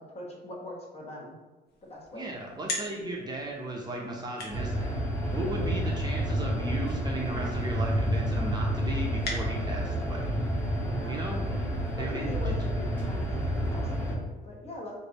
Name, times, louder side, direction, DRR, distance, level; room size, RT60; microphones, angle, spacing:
voice 1, 0.1-1.4 1.9-2.3 5.3-5.8 10.8-11.3 12.0-15.0, left 1 dB, 35° left, -1 dB, 1.1 m, -41 dB
sound 1, 1.7-10.0, left 2 dB, 65° left, 1.0 m, -42 dB
voice 2, 2.1-4.9 5.3-10.3 11.1-11.4 12.0-12.6, right 2 dB, 25° right, -1 dB, 0.6 m, -36 dB
sound 2, 4.5-14.1, equal, 10° left, 1.0 m, -29 dB
3.2 x 2.6 x 3.9 m, 1.2 s
cardioid pair, 110°, 17 cm